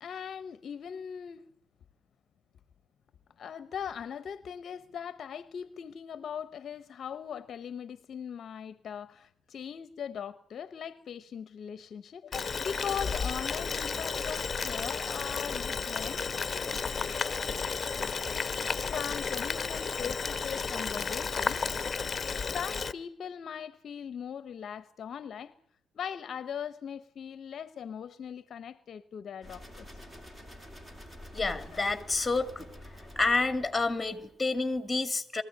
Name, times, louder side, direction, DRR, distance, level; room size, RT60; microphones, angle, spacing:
voice 1, 0.0-1.4 3.4-16.2 18.8-21.7 22.3-25.5 25.9-29.9 31.7-31.8, left 8 dB, 50° left, 0.8 m, -40 dB
Boiling, 12.3-22.9, left 5 dB, 30° left, 1.1 m, -33 dB
sound 1, 29.4-34.4, left 1 dB, 15° right, 3.2 m, -48 dB
voice 2, 31.3-32.7 33.2-35.4, left 3 dB, 10° left, 2.5 m, -29 dB
22.5 x 15.0 x 9.5 m
cardioid pair, 110°, 0 cm